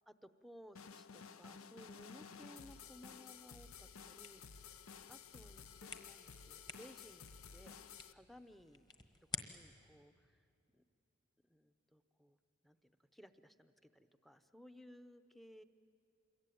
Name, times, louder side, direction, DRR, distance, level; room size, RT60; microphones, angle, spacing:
voice 1, 0.1-4.4 5.1-5.7 5.9-7.8 8.1-8.8 9.3-10.8 11.5-12.4 12.6-15.6, equal, ahead, 10 dB, 0.7 m, -60 dB
sound 1, 0.8-8.1, left 6 dB, 80° left, 0.7 m, -54 dB
sound 2, 4.2-9.9, left 3 dB, 20° left, 1.3 m, -52 dB
sound 3, 5.8-7.8, equal, 60° left, 3.2 m, -69 dB
27.0 x 22.5 x 9.3 m, 2.6 s
head